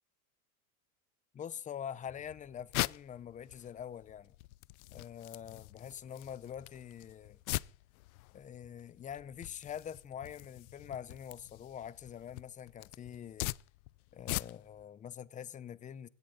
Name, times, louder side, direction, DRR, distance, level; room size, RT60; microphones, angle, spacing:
voice 1, 1.3-4.3 4.9-7.4 8.3-13.5 14.1-16.1, left 9 dB, 15° left, 0.7 m, -45 dB
sound 1, 2.1-14.8, left 20 dB, 75° left, 0.7 m, -43 dB
17.0 x 17.0 x 4.0 m
supercardioid pair, 140°, 43 cm